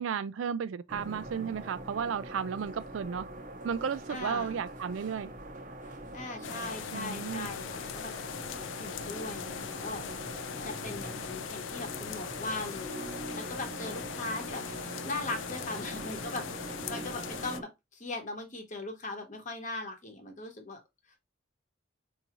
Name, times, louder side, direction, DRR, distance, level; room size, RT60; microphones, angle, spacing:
voice 1, 0.0-3.3 3.6-5.3 6.9-7.5, right 7 dB, 80° right, 0.4 m, -34 dB
sound 1, 0.9-17.6, right 1 dB, 40° right, 0.6 m, -43 dB
voice 2, 4.1-4.6 6.1-8.1 8.8-10.0 10.6-14.6 15.0-20.8, left 2 dB, 40° left, 0.9 m, -39 dB
sound 2, 6.4-17.6, left 8 dB, 75° left, 0.4 m, -40 dB
4.8 x 2.7 x 2.9 m
head